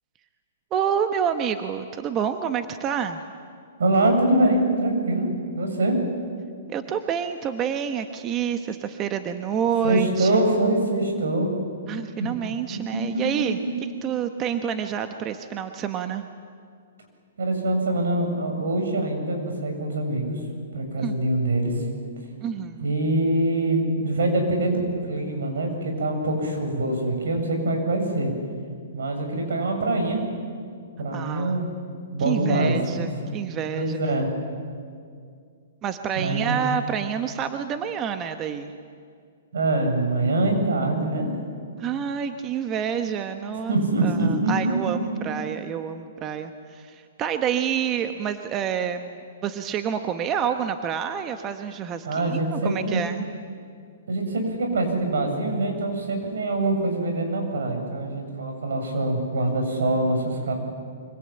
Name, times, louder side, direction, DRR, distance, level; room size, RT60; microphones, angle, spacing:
voice 1, 0.7-3.2 6.7-10.5 11.9-13.6 14.0-16.3 21.0-21.1 22.4-22.9 31.1-31.6 32.2-34.0 35.8-38.7 41.8-53.2, right 8 dB, 25° right, 8 dB, 1.1 m, -28 dB
voice 2, 3.8-6.0 9.8-11.5 12.2-12.4 12.9-13.2 17.4-20.4 20.7-21.8 22.8-28.3 28.9-30.2 31.0-31.7 32.1-32.8 33.2-33.4 33.7-34.3 36.1-36.6 39.5-41.3 43.7-44.5 44.9-45.0 52.0-53.0 54.1-60.5, right 2 dB, 80° right, 3 dB, 7.6 m, -24 dB
25.0 x 23.5 x 9.0 m, 2.2 s
hypercardioid pair, 145°, 0 cm